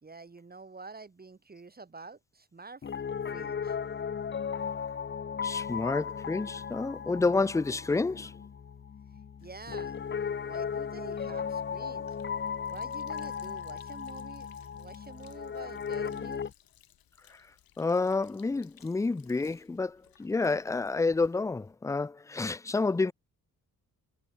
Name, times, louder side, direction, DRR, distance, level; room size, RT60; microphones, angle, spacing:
voice 1, 0.0-2.8 3.3-3.8 9.1-10.0 10.4-12.2 12.7-16.4, right 4 dB, 25° right, 2.7 m, -48 dB
Piano, 2.8-16.5, left 7 dB, 30° left, 0.8 m, -36 dB
voice 2, 5.4-8.3 17.3-17.4 17.8-23.1, left 3 dB, 10° left, 0.4 m, -29 dB
Sink (filling or washing), 9.4-21.7, left 11 dB, 80° left, 7.1 m, -63 dB
cardioid pair, 95°, 35 cm